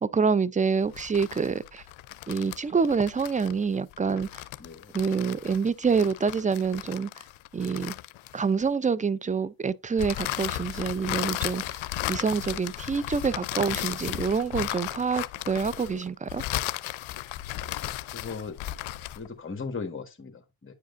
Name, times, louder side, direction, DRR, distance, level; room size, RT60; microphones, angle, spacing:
voice 1, 0.0-1.8 2.3-4.3 4.9-7.1 7.5-7.9 8.3-11.8 12.1-16.4, right 5 dB, 20° right, 0.4 m, -26 dB
sound 1, 0.8-8.7 10.0-19.3, left 15 dB, 85° left, 0.5 m, -35 dB
voice 2, 4.6-5.0 17.6-18.6 19.1-20.7, left 4 dB, 25° left, 1.3 m, -38 dB
9.1 x 4.9 x 2.4 m
cardioid pair, 60°, 46 cm